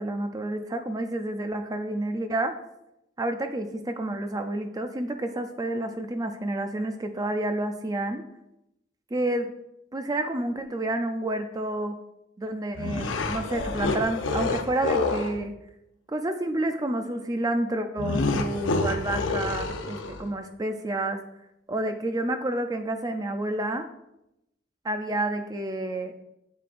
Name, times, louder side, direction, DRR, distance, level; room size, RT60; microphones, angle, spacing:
voice 1, 0.0-2.5 3.2-8.2 9.1-9.5 9.9-12.0 12.4-15.6 16.1-21.2 21.7-23.9 24.8-26.2, right 1 dB, 20° right, 6 dB, 0.4 m, -29 dB
sound 1, 12.7-15.4 18.0-20.3, left 3 dB, 80° left, 0.7 m, -28 dB
8.1 x 7.5 x 2.5 m, 0.85 s
head